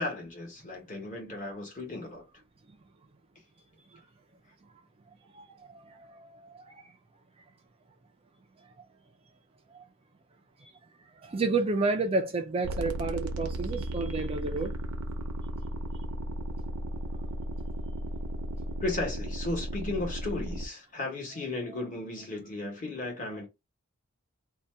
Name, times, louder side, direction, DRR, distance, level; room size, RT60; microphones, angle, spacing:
voice 1, 0.0-2.2 18.8-23.5, left 2 dB, 35° left, 1.1 m, -35 dB
voice 2, 5.3-6.9 9.7-9.8 10.6-10.7 11.2-14.7 21.7-21.8, right 3 dB, 25° right, 0.3 m, -31 dB
sound 1, 12.6-20.7, right 1 dB, 90° right, 0.6 m, -35 dB
2.6 x 2.2 x 3.2 m
head